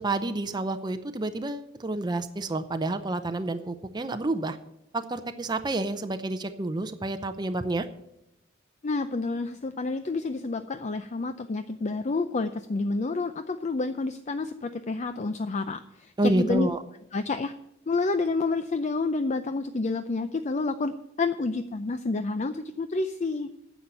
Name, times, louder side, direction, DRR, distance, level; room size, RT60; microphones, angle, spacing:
voice 1, 0.0-4.6 4.9-7.9 16.2-16.8, right 2 dB, 20° right, 8 dB, 0.6 m, -29 dB
voice 2, 8.8-15.8 16.2-16.7 17.1-17.5 17.9-23.5, left 3 dB, 35° left, 9 dB, 0.5 m, -29 dB
10.0 x 7.1 x 8.9 m, 0.85 s
head